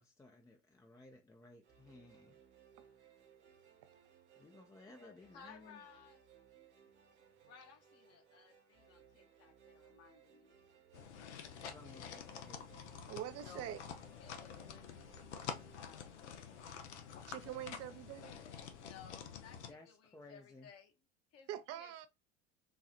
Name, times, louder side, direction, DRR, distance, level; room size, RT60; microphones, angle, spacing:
voice 1, 0.0-2.4 4.4-5.8 11.6-13.0 19.6-20.7, left 2 dB, 10° left, 0.4 m, -58 dB
sound 1, 1.6-16.9, right 8 dB, 85° right, 1.0 m, -65 dB
voice 2, 4.9-6.2 7.4-10.8 13.4-13.8 14.2-16.7 18.8-20.9 21.3-21.5 21.8-22.1, left 7 dB, 45° left, 0.9 m, -59 dB
sound 2, 10.9-19.7, left 7 dB, 85° left, 0.6 m, -48 dB
voice 3, 13.1-13.8 15.4-15.5 17.3-18.4 21.5-22.1, right 11 dB, 45° right, 0.5 m, -44 dB
4.0 x 2.3 x 2.7 m
hypercardioid pair, 80°, 33 cm